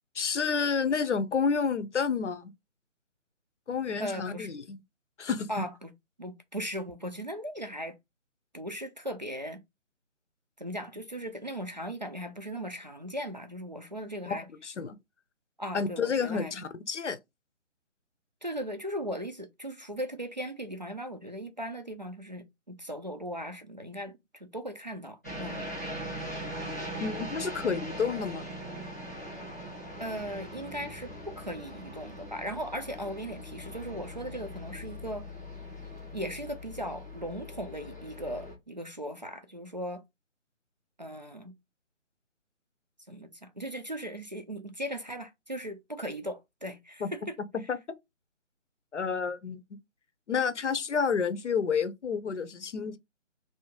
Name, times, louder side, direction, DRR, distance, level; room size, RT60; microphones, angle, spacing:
voice 1, 0.1-2.5 3.7-4.8 5.2-5.7 14.3-15.0 15.7-17.2 27.0-28.5 47.0-47.1 47.7-47.8 48.9-49.6 50.3-53.0, left 6 dB, 65° left, 0.7 m, -30 dB
voice 2, 4.0-4.5 5.5-5.9 6.2-8.0 8.5-9.6 10.6-14.5 15.6-16.6 18.4-25.7 30.0-35.3 36.1-40.0 41.0-41.5 43.1-47.4, equal, 40° right, 0.4 m, -38 dB
sound 1, 25.2-38.6, equal, 15° left, 0.5 m, -41 dB
2.7 x 2.7 x 3.5 m
figure-of-eight pair, 155°, 38 cm